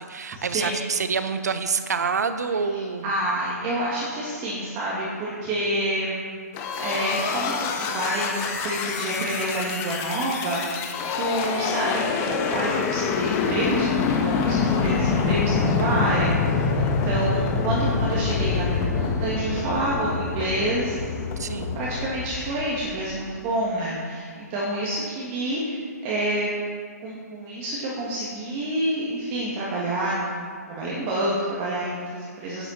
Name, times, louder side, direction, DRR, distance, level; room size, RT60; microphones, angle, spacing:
voice 1, 0.0-3.1 15.2-15.6 21.4-21.8, right 5 dB, 70° right, 10 dB, 1.0 m, -27 dB
voice 2, 2.7-6.4 6.8-10.9 11.1-21.0 21.7-26.5 27.0-32.7, right 1 dB, 30° right, -6 dB, 2.3 m, -28 dB
sound 1, 6.5-23.2, left 5 dB, 25° left, 1.3 m, -26 dB
11.5 x 10.0 x 4.4 m, 2.1 s
figure-of-eight pair, 135°, 9 cm